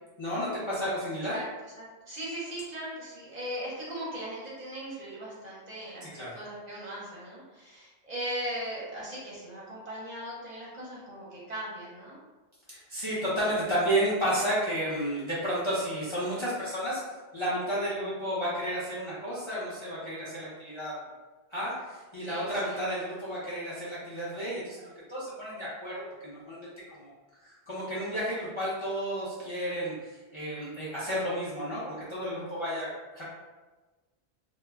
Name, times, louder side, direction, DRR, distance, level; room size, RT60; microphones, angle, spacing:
voice 1, 0.2-1.4 6.0-6.3 12.7-17.0 17.3-21.0 21.5-26.7 27.0-27.1 27.4-33.2, equal, 35° left, -8 dB, 0.5 m, -32 dB
voice 2, 1.8-12.2 22.2-22.8, right 1 dB, 50° right, -6 dB, 0.6 m, -39 dB
2.1 x 2.0 x 3.3 m, 1.2 s
omnidirectional pair, 1.1 m